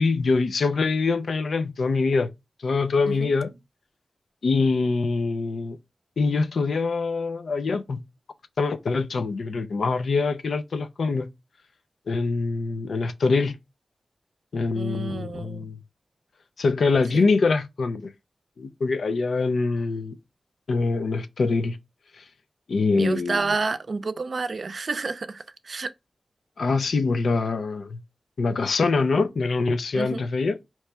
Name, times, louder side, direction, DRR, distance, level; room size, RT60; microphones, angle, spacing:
voice 1, 0.0-2.3 2.6-3.5 4.4-5.8 6.2-8.0 8.6-11.3 12.1-13.6 14.5-15.8 16.6-18.1 18.6-20.1 20.7-21.8 22.2-22.3 22.7-23.5 26.6-28.0 28.4-30.6, left 4 dB, 90° left, 0.5 m, -24 dB
voice 2, 14.7-15.7 17.1-17.3 22.9-25.9 29.9-30.2, right 4 dB, 70° right, 0.4 m, -29 dB
4.5 x 3.0 x 3.3 m
cardioid pair, 55°, 0 cm